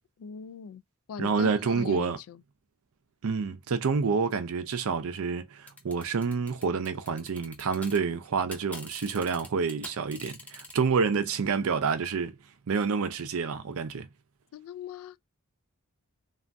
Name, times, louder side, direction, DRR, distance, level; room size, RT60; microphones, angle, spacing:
voice 1, 0.2-0.8 1.1-2.4 14.5-15.2, left 8 dB, 70° left, 0.3 m, -40 dB
voice 2, 1.2-2.2 3.2-12.4 12.7-14.1, right 5 dB, 65° right, 0.5 m, -28 dB
sound 1, 5.7-8.0 8.3-10.7, left 2 dB, 5° left, 0.6 m, -44 dB
3.3 x 2.4 x 2.5 m
head